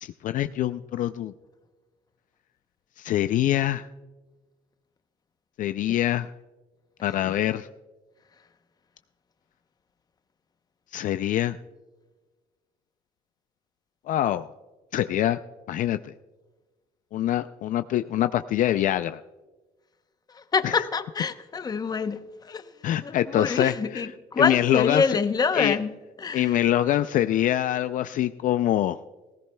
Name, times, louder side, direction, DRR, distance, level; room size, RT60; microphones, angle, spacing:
voice 1, 0.0-1.3 3.0-3.9 5.6-6.3 7.0-7.7 10.9-11.6 14.1-14.5 14.9-15.4 15.7-16.1 17.1-19.2 20.6-20.7 22.8-23.7 24.4-25.2 25.5-25.8 26.3-29.0, left 12 dB, 60° left, 0.4 m, -24 dB
voice 2, 7.0-7.3 20.3-22.7 23.0-25.9 26.2-26.6, left 5 dB, 25° left, 0.7 m, -27 dB
18.5 x 16.0 x 2.2 m
cardioid pair, 140°, 16 cm